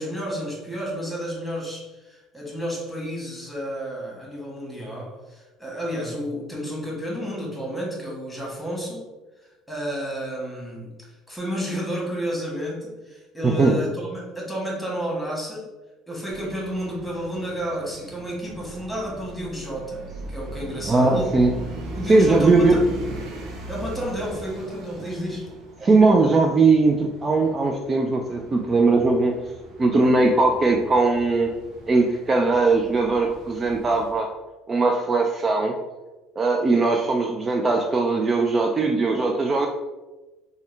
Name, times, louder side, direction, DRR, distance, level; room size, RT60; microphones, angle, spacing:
voice 1, 0.0-9.0 9.7-15.7 16.1-20.0 20.3-21.4 21.9-22.8 23.7-25.5, equal, 5° left, -3 dB, 1.3 m, -31 dB
voice 2, 13.4-13.8 20.9-21.5 22.1-22.8 25.8-29.3 29.8-31.5 31.9-34.3 34.7-35.7 36.4-39.7, right 3 dB, 30° right, 2 dB, 0.3 m, -19 dB
sound 1, 16.3-34.1, right 2 dB, 65° right, 0.7 m, -39 dB
3.6 x 2.2 x 3.2 m, 1.1 s
supercardioid pair, 80°, 0 cm